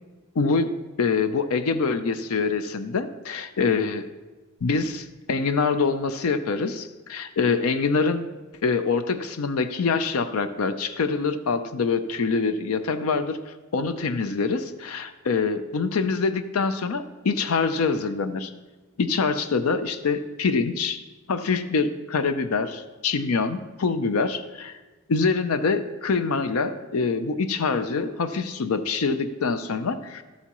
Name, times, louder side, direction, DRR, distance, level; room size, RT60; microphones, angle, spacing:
voice 1, 0.4-4.1 4.6-8.3 8.6-18.5 19.0-24.8 25.1-30.2, left 4 dB, 80° left, 11 dB, 0.5 m, -25 dB
13.0 x 8.2 x 3.0 m, 1.2 s
head